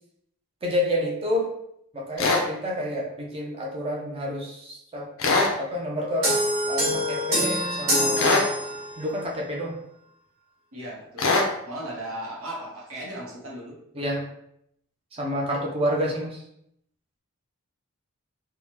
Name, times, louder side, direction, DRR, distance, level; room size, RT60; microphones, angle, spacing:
voice 1, 0.6-1.5 1.9-6.3 6.7-8.4 9.0-9.8 14.0-14.2 15.2-16.4, equal, 25° right, -1 dB, 0.4 m, -29 dB
sound 1, 2.2-2.5 5.2-5.6 8.2-8.5 11.2-11.5, left 3 dB, 60° left, 0.5 m, -21 dB
sound 2, 6.2-9.1, equal, 45° right, 1.5 m, -25 dB
voice 2, 10.7-11.3 11.7-13.8, right 1 dB, 70° right, -3 dB, 0.9 m, -36 dB
3.4 x 2.1 x 2.9 m, 0.74 s
head